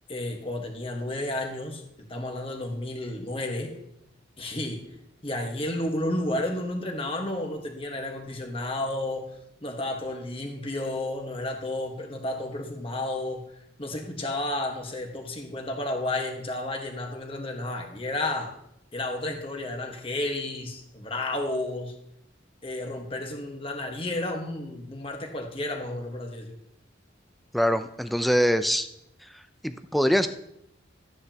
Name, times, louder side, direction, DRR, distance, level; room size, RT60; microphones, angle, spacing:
voice 1, 0.1-3.8 4.4-4.9 5.2-13.5 13.8-18.5 18.9-21.9 22.6-26.6, left 1 dB, 30° left, 2 dB, 1.5 m, -32 dB
voice 2, 27.5-28.9 29.6-30.3, equal, ahead, 9 dB, 0.5 m, -23 dB
13.5 x 9.7 x 2.9 m, 0.77 s
head